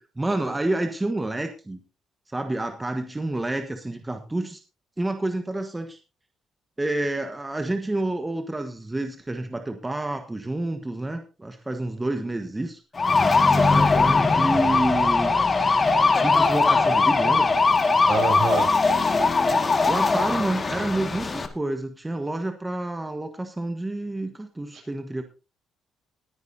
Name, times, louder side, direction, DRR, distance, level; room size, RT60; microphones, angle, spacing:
voice 1, 0.0-1.8 2.3-4.6 5.0-6.0 6.8-12.8 13.5-15.6 16.2-17.5 19.9-25.2, right 2 dB, 15° right, 6 dB, 1.4 m, -29 dB
sound 1, 13.0-21.5, left 4 dB, 35° left, 1.9 m, -20 dB
voice 2, 18.1-18.7 24.7-24.8, right 5 dB, 65° right, 0 dB, 7.5 m, -26 dB
20.5 x 9.4 x 2.8 m, 0.30 s
cardioid pair, 90°, 0 cm